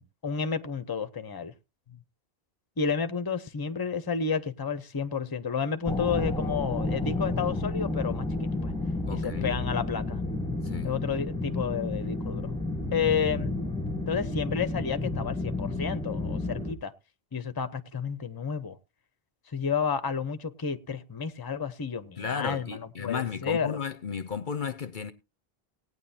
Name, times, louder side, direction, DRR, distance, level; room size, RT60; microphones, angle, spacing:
voice 1, 0.0-1.5 2.8-8.7 9.1-10.2 10.8-12.5 12.9-13.5 14.1-16.9 17.3-18.8 19.5-23.8, left 6 dB, 25° left, 0.7 m, -31 dB
sound 1, 5.9-16.7, left 2 dB, 5° left, 1.0 m, -31 dB
voice 2, 9.1-9.5 10.6-10.9 22.2-25.1, left 6 dB, 55° left, 0.8 m, -34 dB
18.0 x 9.5 x 2.8 m
omnidirectional pair, 1.0 m